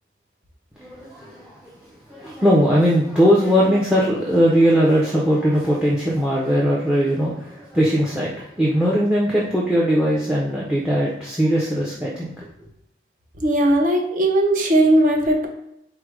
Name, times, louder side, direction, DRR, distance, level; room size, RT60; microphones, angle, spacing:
voice 1, 0.8-1.7 2.1-12.3, equal, 5° right, -5 dB, 0.6 m, -19 dB
voice 2, 13.4-15.5, right 1 dB, 45° right, 1 dB, 0.8 m, -18 dB
4.6 x 2.1 x 4.7 m, 0.80 s
head